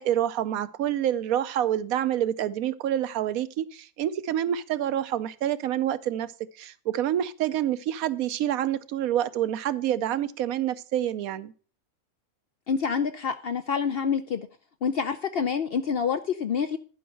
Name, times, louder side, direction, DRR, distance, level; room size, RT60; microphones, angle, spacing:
voice 1, 0.0-11.5, right 11 dB, 80° right, 1.1 m, -27 dB
voice 2, 12.7-14.5 14.8-16.8, left 6 dB, 60° left, 0.6 m, -27 dB
11.0 x 5.5 x 6.2 m
omnidirectional pair, 1.5 m